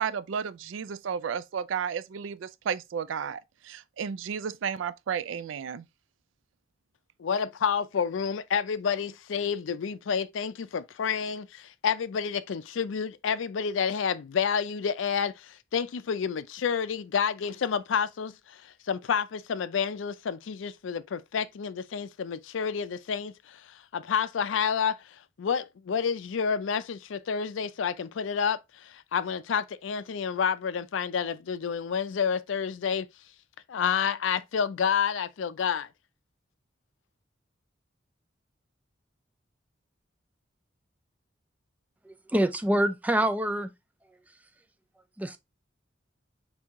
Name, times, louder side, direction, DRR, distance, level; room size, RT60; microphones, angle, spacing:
voice 1, 0.0-5.8, right 7 dB, 80° right, 0.4 m, -33 dB
voice 2, 7.2-33.1 33.7-35.9, left 6 dB, 80° left, 0.4 m, -29 dB
voice 3, 42.1-43.7 45.2-45.4, right 1 dB, 10° right, 0.3 m, -26 dB
4.4 x 2.7 x 3.5 m
head